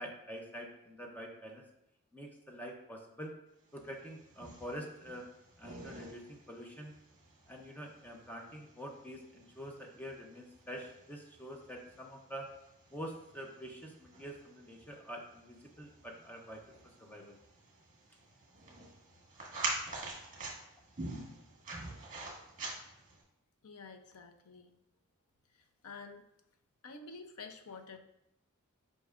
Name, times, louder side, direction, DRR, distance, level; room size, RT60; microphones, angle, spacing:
voice 1, 0.0-1.6 2.1-3.3 3.7-5.3 5.6-6.9 7.5-12.5 12.9-16.6 17.0-17.4, equal, 10° left, 1 dB, 0.6 m, -46 dB
sound 1, 3.8-23.2, right 2 dB, 35° right, 1.7 m, -46 dB
voice 2, 23.6-24.7 25.5-26.2 26.8-28.0, left 4 dB, 85° left, 6 dB, 0.6 m, -49 dB
8.2 x 5.3 x 2.5 m, 0.84 s
head